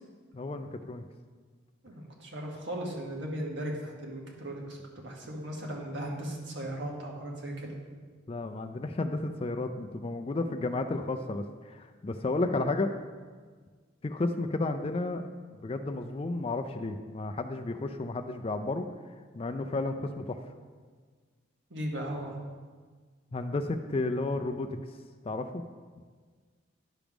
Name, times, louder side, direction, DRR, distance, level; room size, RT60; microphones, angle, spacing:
voice 1, 0.3-1.0 8.3-12.9 14.0-15.2 15.6-18.8 19.3-20.4 23.3-24.7 25.2-25.6, left 2 dB, 30° left, 7 dB, 0.4 m, -32 dB
voice 2, 1.8-7.7 21.7-22.4, right 1 dB, 65° right, -1 dB, 1.5 m, -37 dB
10.0 x 3.5 x 6.0 m, 1.5 s
head